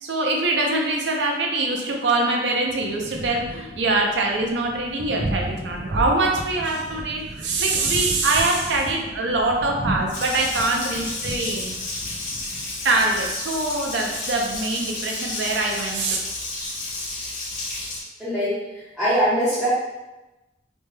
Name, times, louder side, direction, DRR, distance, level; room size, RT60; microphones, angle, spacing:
voice 1, 0.0-11.8 12.8-16.2, right 2 dB, 90° right, 1 dB, 0.5 m, -23 dB
Thunder, 2.7-18.0, right 1 dB, 35° right, 0.3 m, -35 dB
Water tap faucet, 10.1-18.0, left 2 dB, 45° left, 0.8 m, -31 dB
voice 2, 18.2-18.6 19.0-19.7, equal, ahead, -15 dB, 0.8 m, -21 dB
3.0 x 2.2 x 3.2 m, 1.1 s
head